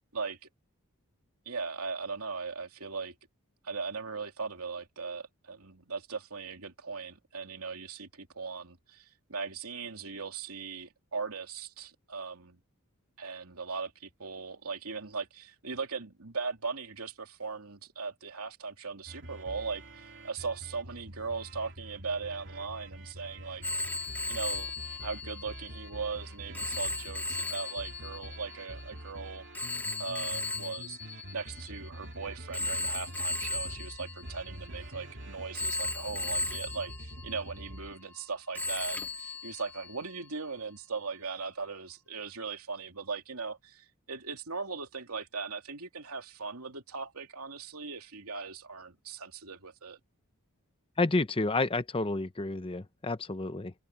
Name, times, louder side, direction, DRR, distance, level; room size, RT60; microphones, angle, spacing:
voice 1, 1.4-3.1 3.6-12.6 13.2-23.9 24.3-24.7 25.0-29.5 30.0-50.0, right 4 dB, 80° right, 2.9 m, -39 dB
sound 1, 19.1-38.0, right 1 dB, 55° right, 3.2 m, -46 dB
Telephone, 23.6-32.0 32.5-35.1 35.5-38.3 38.5-40.3, left 3 dB, 10° left, 2.0 m, -37 dB
voice 2, 51.0-53.7, left 2 dB, 25° left, 0.8 m, -30 dB
head